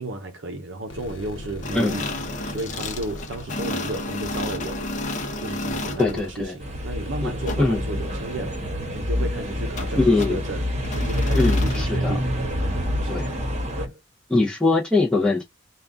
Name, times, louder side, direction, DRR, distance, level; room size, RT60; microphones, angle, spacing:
voice 1, 0.0-2.1 2.4-4.8 5.4-8.6 8.9-10.7 10.9-12.3 13.0-13.5 13.8-14.0, right 1 dB, 65° right, 0.6 m, -33 dB
sound 1, 0.8-11.2 11.8-11.9 12.4-12.5 12.8-12.9, left 1 dB, 70° left, 0.8 m, -41 dB
sound 2, 1.6-6.3 7.4-7.6 9.8-9.9 10.2-10.4 10.8-11.9, left 2 dB, 40° left, 0.7 m, -32 dB
voice 2, 6.0-6.5 7.2-7.3 7.6-7.8 10.0-10.4 11.4-12.2 13.1-13.3 14.3-15.4, left 3 dB, 5° left, 0.6 m, -21 dB
sound 3, 6.6-13.9, equal, 35° right, 1.0 m, -26 dB
3.6 x 2.3 x 3.7 m
head